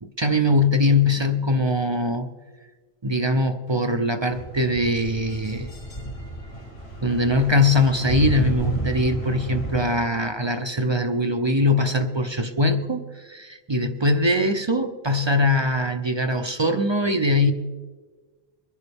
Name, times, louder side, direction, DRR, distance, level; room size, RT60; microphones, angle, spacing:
voice 1, 0.0-2.3 3.0-5.7 7.0-17.5, left 1 dB, 35° right, 8 dB, 0.5 m, -22 dB
sound 1, 4.3-9.8, right 1 dB, 75° left, 2.1 m, -31 dB
22.5 x 11.0 x 3.5 m, 1.4 s
omnidirectional pair, 1.1 m